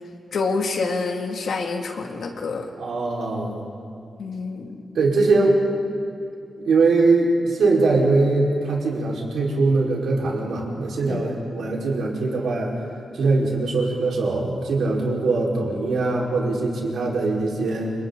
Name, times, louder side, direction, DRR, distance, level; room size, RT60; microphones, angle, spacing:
voice 1, 0.3-2.7 4.2-4.8 11.1-11.2, left 4 dB, 65° left, 2 dB, 2.5 m, -27 dB
voice 2, 2.8-3.6 4.9-5.5 6.6-12.7 13.1-17.9, right 3 dB, 75° right, -3 dB, 5.0 m, -21 dB
30.0 x 28.0 x 4.1 m, 2.6 s
wide cardioid pair, 170°, 0 cm